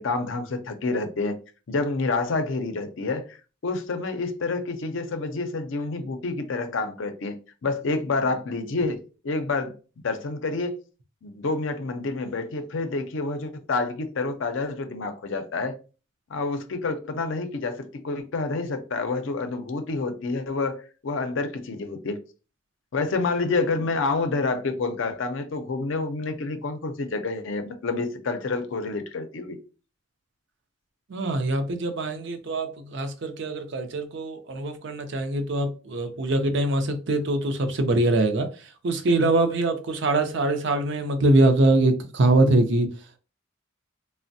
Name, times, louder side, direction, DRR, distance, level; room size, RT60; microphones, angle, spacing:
voice 1, 0.0-1.4 1.7-3.4 3.6-9.7 10.0-10.8 11.2-15.7 16.3-22.2 22.9-29.6, left 3 dB, 65° left, 0.5 m, -28 dB
voice 2, 31.1-42.9, right 2 dB, 60° right, 0.5 m, -23 dB
3.3 x 2.0 x 2.6 m
head